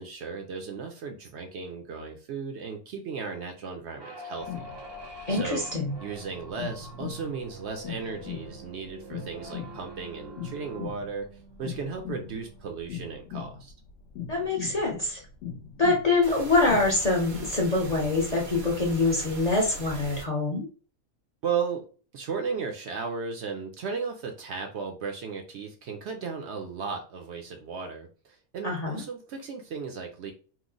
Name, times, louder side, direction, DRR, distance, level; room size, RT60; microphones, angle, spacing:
voice 1, 0.0-4.7 5.3-5.6 6.0-11.3 11.6-13.7 21.4-21.8 22.1-30.3, right 5 dB, 65° right, 4 dB, 0.7 m, -35 dB
sound 1, 4.0-12.7, equal, 30° right, 0.4 m, -45 dB
sound 2, 4.4-16.8, left 8 dB, 75° left, 0.9 m, -40 dB
voice 2, 5.3-5.9 14.3-15.2 15.8-20.7 28.6-29.0, left 3 dB, 40° left, -2 dB, 0.6 m, -25 dB
sound 3, 16.2-20.2, right 2 dB, 85° right, 1.3 m, -41 dB
2.9 x 2.0 x 3.7 m, 0.38 s
omnidirectional pair, 1.4 m